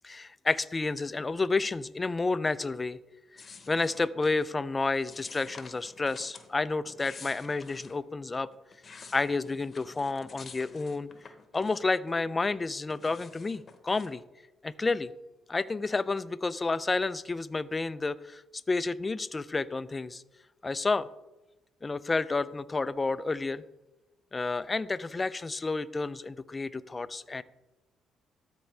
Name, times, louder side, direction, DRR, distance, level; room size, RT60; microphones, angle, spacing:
voice 1, 0.0-3.0 3.3-3.4 3.7-8.5 9.1-11.1 11.5-14.2 14.6-15.1 15.5-18.4 18.7-20.2 20.6-21.1 21.8-23.6 24.3-27.4, left 3 dB, 25° left, 15 dB, 0.4 m, -30 dB
sound 1, 3.4-4.5 5.1-6.5 6.8-8.0 8.5-12.1 12.4-14.2, left 5 dB, 40° left, 0.9 m, -50 dB
13.5 x 4.4 x 3.2 m, 1.0 s
cardioid pair, 75°, 0 cm